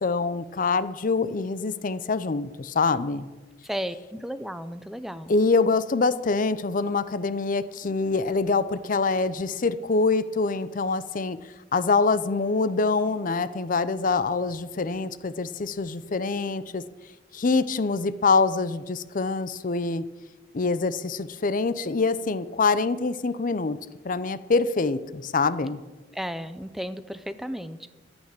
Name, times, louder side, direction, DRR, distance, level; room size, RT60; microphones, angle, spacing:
voice 1, 0.0-3.3 5.3-11.4 11.7-16.8 17.3-20.0 20.5-23.8 24.0-25.8, left 4 dB, 45° left, 15 dB, 0.6 m, -25 dB
voice 2, 3.6-5.3 26.1-27.9, equal, ahead, 12 dB, 0.5 m, -34 dB
12.5 x 9.0 x 7.5 m, 1.2 s
head